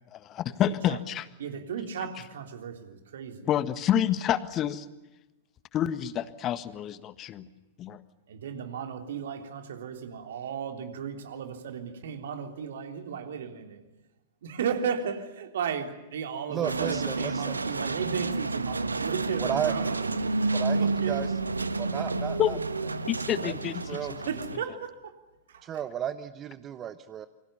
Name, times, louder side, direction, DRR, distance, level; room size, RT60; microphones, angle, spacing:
voice 1, 0.1-1.3 3.4-4.9 5.7-7.5 7.8-8.0 22.4-22.6 23.1-24.3, left 10 dB, 30° left, 14 dB, 1.6 m, -28 dB
voice 2, 1.4-3.5 8.3-13.8 14.4-20.5 20.8-21.2 24.3-24.9 25.5-25.8, right 7 dB, 60° right, 6 dB, 3.5 m, -35 dB
voice 3, 16.5-17.1 17.5-17.6 19.5-19.7 20.5-20.8 21.1-21.3 21.8-22.4 23.4-23.5 23.9-24.1 25.7-27.3, right 10 dB, 25° right, 13 dB, 1.1 m, -32 dB
sound 1, 16.6-24.6, right 3 dB, 80° right, 1.4 m, -30 dB
28.5 x 25.0 x 7.0 m, 1.0 s
figure-of-eight pair, 95°, 0 cm